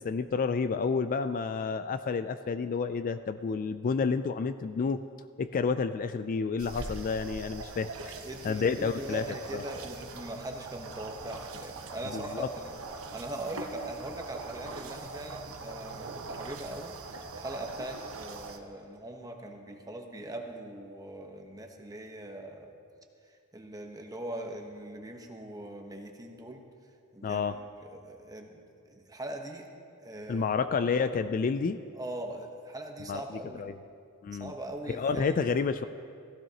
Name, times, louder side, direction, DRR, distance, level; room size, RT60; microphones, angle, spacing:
voice 1, 0.0-5.0 5.4-8.1 8.4-9.2 9.5-9.6 12.1-12.5 27.2-27.6 30.3-31.8 33.1-33.2 33.5-33.7 34.2-34.5 34.9-35.9, left 5 dB, 40° left, 11 dB, 0.3 m, -30 dB
sound 1, 6.6-18.6, right 3 dB, 65° right, 1.0 m, -42 dB
voice 2, 8.2-12.7 13.1-17.0 17.3-22.7 23.3-26.6 27.1-27.4 27.8-28.6 28.9-29.7 30.0-30.5 31.9-33.7 34.4-35.4, right 1 dB, 15° right, 3 dB, 1.0 m, -41 dB
sound 2, 10.0-16.8, right 5 dB, 90° right, 0.9 m, -57 dB
15.0 x 15.0 x 2.9 m, 2.4 s
head